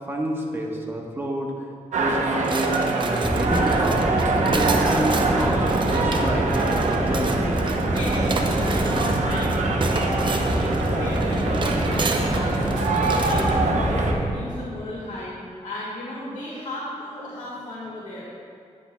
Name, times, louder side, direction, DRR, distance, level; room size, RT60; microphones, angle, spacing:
voice 1, 0.1-1.7 2.0-4.1 4.4-7.5, right 1 dB, 20° right, -1 dB, 1.1 m, -29 dB
sound 1, 1.9-14.1, right 3 dB, 75° right, 0.8 m, -25 dB
sound 2, 2.4-13.6, right 3 dB, 40° right, 0.6 m, -31 dB
sound 3, 3.2-14.3, right 1 dB, ahead, 1.1 m, -25 dB
voice 2, 7.8-9.6 9.9-12.8 13.2-18.2, left 1 dB, 90° left, -6 dB, 1.7 m, -34 dB
9.7 x 9.6 x 2.3 m, 2.4 s
wide cardioid pair, 110°, 13 cm